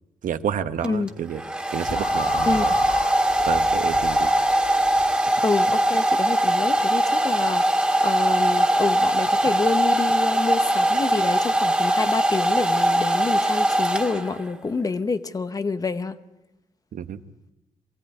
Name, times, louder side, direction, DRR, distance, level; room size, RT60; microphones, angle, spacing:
voice 1, 0.2-1.4 1.7-2.7 3.4-4.3 16.9-17.2, right 8 dB, 80° right, 1.1 m, -29 dB
Domestic sounds home sounds, 0.8-14.6, right 1 dB, 10° right, 1.8 m, -21 dB
sound 1, 1.9-5.1, left 4 dB, 70° left, 2.2 m, -35 dB
voice 2, 2.5-2.8 5.4-7.6 8.0-16.2, left 4 dB, 25° left, 0.9 m, -27 dB
23.5 x 17.0 x 9.8 m
wide cardioid pair, 170°, 14 cm